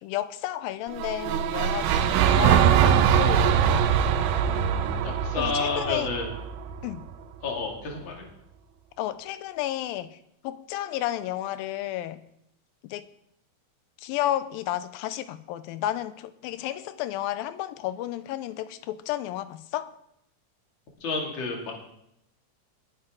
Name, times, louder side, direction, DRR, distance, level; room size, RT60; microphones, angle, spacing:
voice 1, 0.0-3.6 4.5-6.1 6.8-7.1 9.0-12.2 12.8-13.1 14.0-19.9, left 13 dB, 80° left, 2.4 m, -32 dB
sound 1, 0.9-7.1, right 8 dB, 85° right, 2.5 m, -22 dB
voice 2, 5.0-6.3 7.4-8.2 21.0-21.7, left 4 dB, 35° left, 2.7 m, -30 dB
21.0 x 9.0 x 3.8 m
omnidirectional pair, 4.2 m